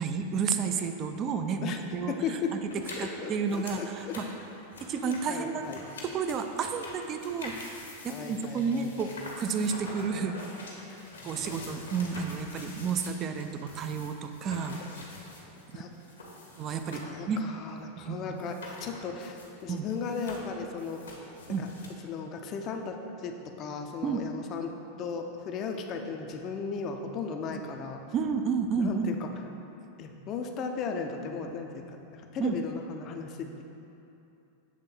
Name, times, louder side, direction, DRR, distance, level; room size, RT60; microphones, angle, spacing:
voice 1, 0.0-2.1 2.5-2.6 3.0-4.3 4.8-5.6 6.1-7.5 8.0-10.4 11.2-14.8 15.7-15.8 16.6-17.4 18.0-18.4 19.7-19.9 21.5-21.7 24.0-24.3 28.1-29.2 32.4-32.6, right 6 dB, 30° right, 7 dB, 0.4 m, -31 dB
voice 2, 2.1-2.6 3.0-4.2 5.0-5.8 8.1-9.1 11.2-11.6 15.7-15.9 17.1-21.0 21.6-21.7 22.0-28.0 28.8-29.3 30.0-33.6, left 5 dB, 35° left, 4 dB, 0.5 m, -36 dB
sound 1, 2.7-17.2 17.5-17.6 18.4-19.6 19.9-21.9, left 2 dB, 70° left, 0.9 m, -45 dB
7.2 x 3.4 x 4.0 m, 2.8 s
figure-of-eight pair, 90°, 0 cm